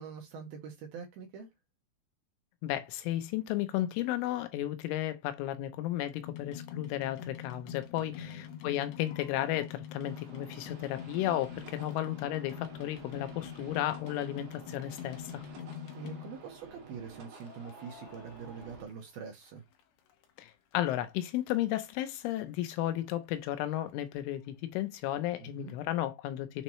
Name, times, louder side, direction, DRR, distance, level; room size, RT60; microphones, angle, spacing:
voice 1, 0.0-1.5 8.2-8.4 15.9-19.6 25.4-25.7, right 6 dB, 70° right, 2.5 m, -44 dB
voice 2, 2.6-15.4 20.4-26.6, left 13 dB, 90° left, 3.3 m, -34 dB
sound 1, 6.2-16.6 17.4-19.5 19.8-20.7 21.3-21.4 21.5-21.6 21.8-21.9 22.4-22.5 22.7-22.8, left 9 dB, 70° left, 2.6 m, -44 dB
sound 2, 10.0-18.8, right 4 dB, 50° right, 2.9 m, -52 dB
7.2 x 5.5 x 3.1 m
omnidirectional pair, 5.4 m